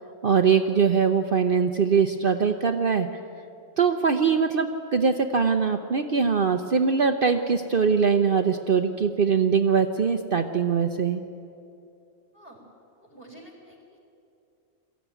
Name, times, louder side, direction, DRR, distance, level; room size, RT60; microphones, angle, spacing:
voice 1, 0.2-3.1 3.8-11.2, right 6 dB, 50° right, 6 dB, 0.8 m, -22 dB
voice 2, 13.0-14.0, right 1 dB, 45° left, 0 dB, 4.4 m, -49 dB
22.0 x 14.5 x 9.2 m, 2.5 s
omnidirectional pair, 1.4 m